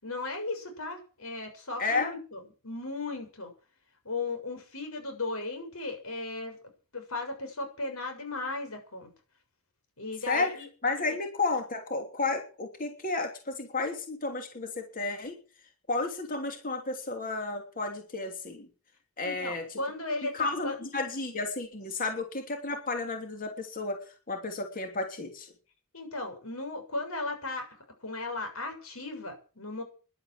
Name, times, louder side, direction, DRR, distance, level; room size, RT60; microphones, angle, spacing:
voice 1, 0.0-3.5 4.1-6.6 6.9-9.1 10.0-10.7 19.2-20.8 25.9-27.7 28.0-29.8, left 2 dB, 75° left, 5 dB, 7.0 m, -36 dB
voice 2, 1.8-2.1 10.3-10.5 10.8-15.3 15.9-18.7 19.2-19.7 20.3-25.5, left 3 dB, 40° left, 4 dB, 3.2 m, -32 dB
11.5 x 11.5 x 8.9 m, 0.37 s
head